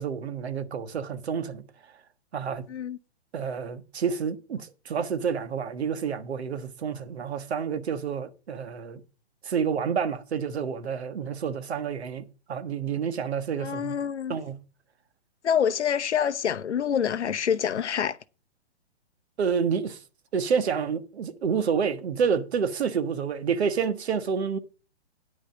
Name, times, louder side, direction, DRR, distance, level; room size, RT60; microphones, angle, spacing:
voice 1, 0.0-1.6 2.3-2.6 3.3-9.0 9.4-12.2 12.5-13.9 14.3-14.6 19.4-20.0 20.3-24.6, right 6 dB, 70° right, 1.3 m, -29 dB
voice 2, 13.6-14.3 15.4-18.2, left 8 dB, 85° left, 0.7 m, -26 dB
9.8 x 5.2 x 6.8 m
hypercardioid pair, 135°, 34 cm